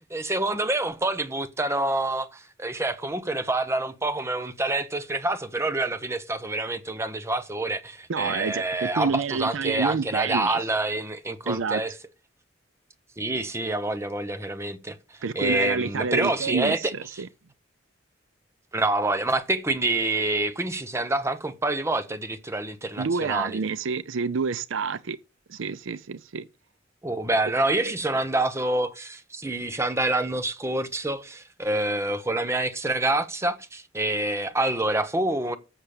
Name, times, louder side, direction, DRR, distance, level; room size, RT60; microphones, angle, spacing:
voice 1, 0.1-11.9 13.2-15.0 15.3-17.2 18.7-23.6 27.0-35.6, right 2 dB, 15° right, 0.9 m, -27 dB
voice 2, 8.1-10.6 11.5-11.8 15.2-17.3 23.0-25.2 25.5-26.5 27.8-27.9, right 5 dB, 85° right, 0.5 m, -28 dB
7.3 x 6.7 x 6.6 m
head